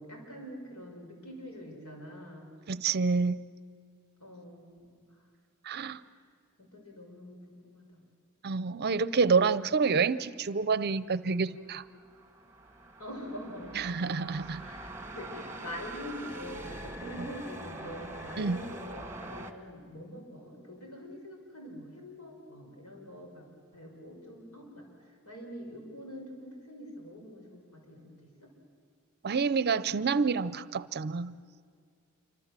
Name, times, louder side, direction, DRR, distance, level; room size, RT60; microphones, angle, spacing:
voice 1, 0.0-2.5 4.2-5.2 5.8-6.2 6.6-8.1 13.0-14.1 14.6-23.4 23.7-28.5, equal, 90° left, 1 dB, 5.8 m, -45 dB
voice 2, 2.7-3.4 5.7-6.0 8.4-11.8 13.8-14.6 18.4-18.6 29.2-31.3, right 5 dB, 45° right, 16 dB, 0.6 m, -28 dB
sound 1, 11.6-19.5, right 1 dB, 10° right, 1.5 m, -44 dB
27.5 x 25.0 x 7.5 m, 2.1 s
head